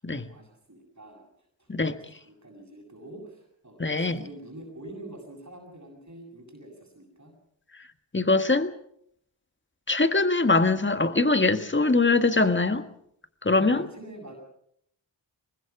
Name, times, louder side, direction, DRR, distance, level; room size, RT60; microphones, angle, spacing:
voice 1, 0.1-1.2 1.6-7.3 13.5-14.3, right 1 dB, 35° right, 1 dB, 7.4 m, -46 dB
voice 2, 3.8-4.2 8.1-8.7 9.9-12.9 13.4-13.9, left 3 dB, 25° left, 9 dB, 1.6 m, -22 dB
23.5 x 20.0 x 6.0 m, 0.70 s
wide cardioid pair, 55°, 47 cm